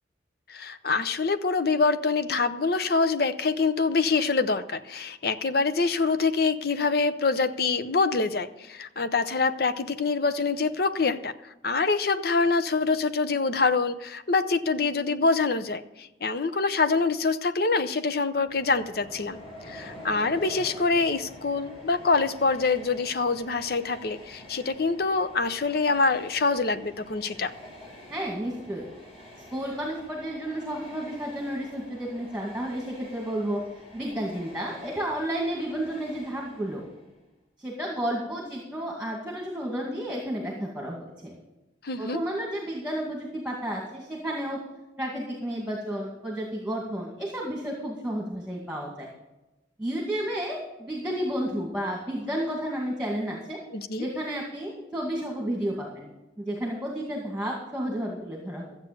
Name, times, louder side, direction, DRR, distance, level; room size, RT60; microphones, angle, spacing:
voice 1, 0.5-19.4 19.7-27.5 41.8-42.2 53.7-54.1, left 4 dB, 55° left, 11 dB, 0.7 m, -25 dB
Train, 18.3-37.2, left 1 dB, 35° left, 4.4 m, -47 dB
voice 2, 28.1-28.9 29.5-33.6 33.9-36.8 37.6-41.4 42.0-44.6 45.0-49.1 49.8-53.6 54.0-56.1 56.4-58.7, right 1 dB, 5° right, -2 dB, 2.1 m, -32 dB
13.5 x 8.2 x 6.8 m, 0.99 s
head